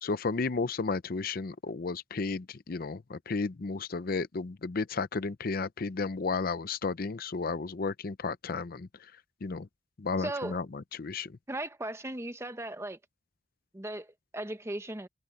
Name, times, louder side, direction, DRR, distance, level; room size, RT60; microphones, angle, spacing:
voice 1, 0.0-9.1 9.4-9.7 10.0-11.4, left 4 dB, 50° left, 0.6 m, -33 dB
voice 2, 10.2-10.6 11.5-13.0 13.7-15.1, right 1 dB, 15° right, 0.9 m, -37 dB
head